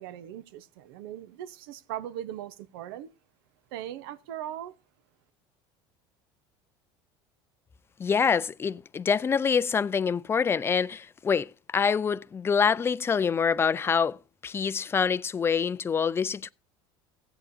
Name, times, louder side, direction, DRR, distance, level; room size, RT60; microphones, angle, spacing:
voice 1, 0.0-3.1 3.7-4.8, right 11 dB, 85° right, 0.9 m, -39 dB
voice 2, 8.0-14.2 14.4-16.5, left 6 dB, 20° left, 0.4 m, -26 dB
16.0 x 8.9 x 2.7 m
supercardioid pair, 120°, 12 cm